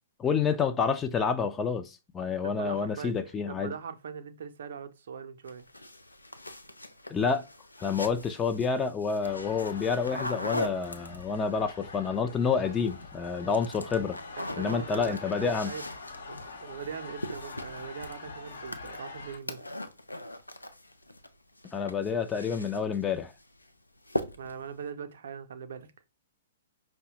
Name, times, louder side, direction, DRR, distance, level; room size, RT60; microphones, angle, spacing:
voice 1, 0.2-3.7 7.1-7.4 7.8-14.2 14.6-15.7 21.7-23.3, left 5 dB, 15° left, 0.4 m, -28 dB
voice 2, 2.4-3.2 3.5-5.6 14.4-15.8 16.3-19.6 24.4-25.9, right 7 dB, 60° right, 0.5 m, -41 dB
sound 1, 5.5-11.5 12.6-13.1 13.4-21.3 21.6-23.0 23.4-23.7 24.0-24.7, left 1 dB, 90° left, 0.4 m, -40 dB
sound 2, 9.2-19.4, left 3 dB, 70° left, 0.8 m, -45 dB
5.3 x 2.1 x 2.9 m
figure-of-eight pair, 115°, 0 cm